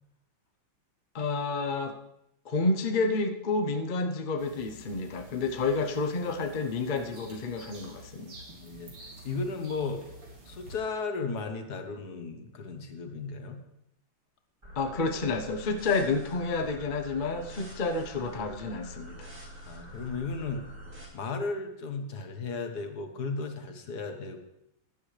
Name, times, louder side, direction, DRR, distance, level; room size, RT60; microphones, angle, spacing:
voice 1, 1.1-1.9 2.5-8.3 14.8-19.2, left 3 dB, 75° left, 5 dB, 0.4 m, -30 dB
sound 1, 4.4-10.7, right 1 dB, 85° right, 3.6 m, -49 dB
voice 2, 8.5-10.0 10.4-13.6 19.7-20.6 21.1-24.4, left 4 dB, 50° left, 5 dB, 1.6 m, -35 dB
sound 2, 14.6-21.0, equal, 30° right, 4.0 m, -46 dB
16.5 x 10.5 x 3.3 m, 0.83 s
omnidirectional pair, 2.3 m